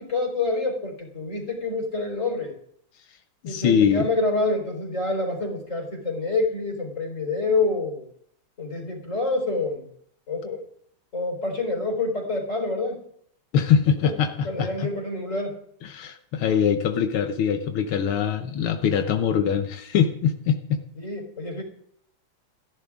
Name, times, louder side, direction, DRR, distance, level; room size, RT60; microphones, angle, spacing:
voice 1, 0.0-2.5 3.4-8.0 8.6-9.8 10.3-10.6 11.1-13.0 14.0-14.1 14.4-15.6 21.0-21.6, left 3 dB, 35° left, 1 dB, 4.7 m, -27 dB
voice 2, 3.4-4.1 13.5-14.9 15.8-20.8, left 7 dB, 85° left, 7 dB, 1.9 m, -23 dB
29.5 x 11.0 x 3.7 m, 0.66 s
omnidirectional pair, 2.3 m